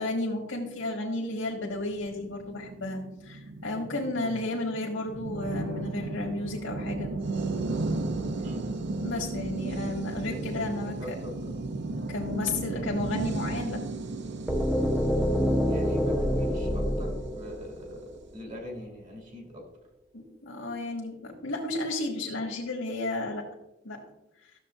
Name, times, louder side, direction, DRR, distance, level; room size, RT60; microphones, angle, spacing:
voice 1, 0.0-7.1 9.0-11.1 12.1-13.8 20.1-23.4 23.8-24.0 24.4-24.5, left 2 dB, 85° left, -1 dB, 1.4 m, -33 dB
sound 1, 1.9-17.3, right 2 dB, 60° right, 0.5 m, -35 dB
voice 2, 8.4-8.7 9.7-9.8 10.2-11.7 12.7-12.8 15.6-19.6, equal, 40° right, 0 dB, 2.6 m, -42 dB
sound 2, 14.5-18.4, equal, 5° right, 0.6 m, -27 dB
12.5 x 6.9 x 2.4 m, 0.90 s
head